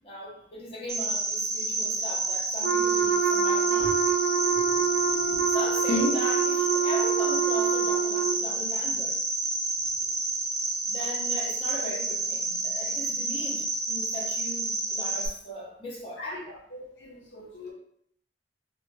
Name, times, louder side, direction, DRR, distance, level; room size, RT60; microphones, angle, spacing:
voice 1, 0.0-4.0 5.5-9.2 10.9-16.4 17.5-17.7, left 1 dB, 35° left, -4 dB, 0.8 m, -39 dB
Cricket, 0.9-15.3, right 2 dB, 15° right, 0.5 m, -29 dB
Wind instrument woodwind instrument, 2.6-8.4, right 6 dB, 75° right, 0.4 m, -26 dB
voice 2, 4.5-4.8 5.1-5.4 5.9-6.1 16.2-17.7, left 2 dB, 80° left, -2 dB, 0.8 m, -34 dB
3.1 x 2.7 x 2.2 m, 0.67 s
head